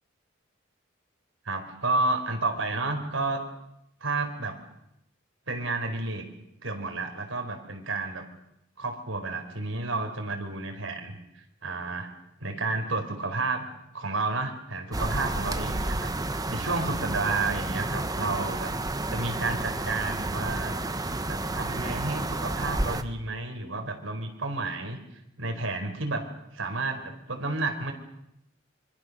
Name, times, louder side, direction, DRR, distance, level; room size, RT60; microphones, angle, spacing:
voice 1, 1.4-3.4 4.0-4.6 5.5-6.2 6.6-8.2 8.8-11.1 11.6-12.1 12.4-13.7 13.9-18.7 19.1-20.7 21.2-25.0 25.4-26.2 26.5-27.9, right 3 dB, 80° right, 4 dB, 4.5 m, -31 dB
sound 1, 14.9-23.0, right 2 dB, 20° right, 1.2 m, -31 dB
25.5 x 25.5 x 6.7 m, 0.80 s
head